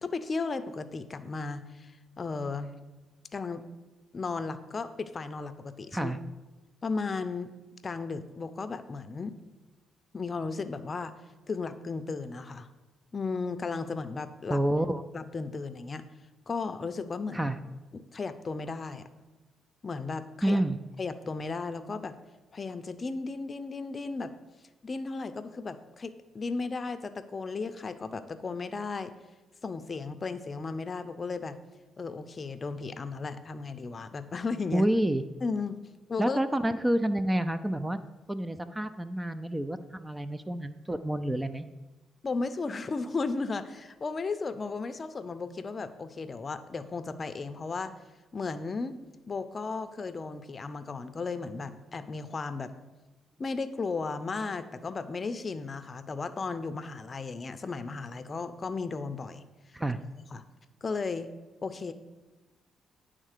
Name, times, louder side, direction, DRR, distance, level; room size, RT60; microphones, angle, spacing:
voice 1, 0.0-2.7 3.3-3.6 4.1-6.1 6.8-7.5 7.8-9.4 10.1-11.1 11.5-12.7 13.1-14.6 15.1-16.0 16.5-17.5 17.9-19.0 19.8-20.6 21.0-22.2 22.5-24.3 24.8-29.1 29.6-31.6 32.0-34.9 35.4-35.8 36.1-36.4 42.2-47.9 48.3-49.0 49.3-52.7 53.4-59.4 60.3-60.4 60.8-61.3 61.6-61.9, left 4 dB, 35° left, 11 dB, 0.6 m, -35 dB
voice 2, 14.5-15.0 17.3-17.6 20.4-20.8 34.7-35.2 36.2-38.0 38.3-41.6 59.7-60.0, right 1 dB, 10° right, 11 dB, 0.4 m, -28 dB
9.9 x 3.7 x 6.6 m, 1.1 s
cardioid pair, 90°, 0 cm